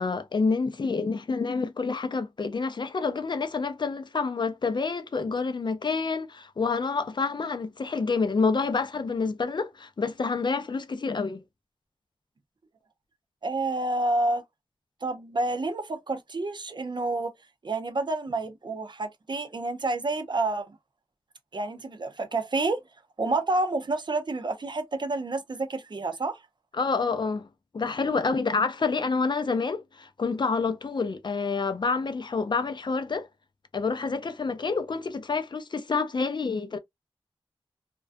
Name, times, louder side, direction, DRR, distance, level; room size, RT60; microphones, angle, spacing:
voice 1, 0.0-11.4 26.7-27.5 27.7-33.3 33.7-36.8, left 4 dB, 50° left, 0.4 m, -28 dB
voice 2, 13.4-14.4 15.0-17.3 17.6-20.8 21.5-22.8 23.2-26.4, right 2 dB, 50° right, 0.5 m, -29 dB
2.3 x 2.1 x 2.4 m
wide cardioid pair, 75°, 10 cm